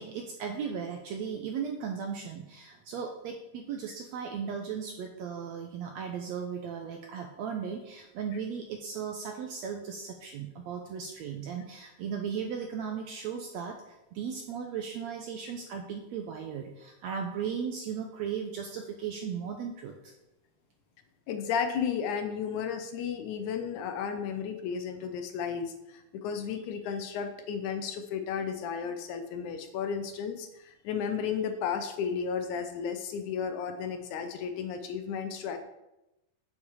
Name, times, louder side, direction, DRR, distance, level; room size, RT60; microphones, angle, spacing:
voice 1, 0.0-20.1, right 7 dB, 80° right, 3 dB, 1.6 m, -36 dB
voice 2, 21.3-35.6, left 7 dB, 75° left, 7 dB, 2.0 m, -33 dB
7.4 x 7.2 x 4.8 m, 0.93 s
omnidirectional pair, 3.8 m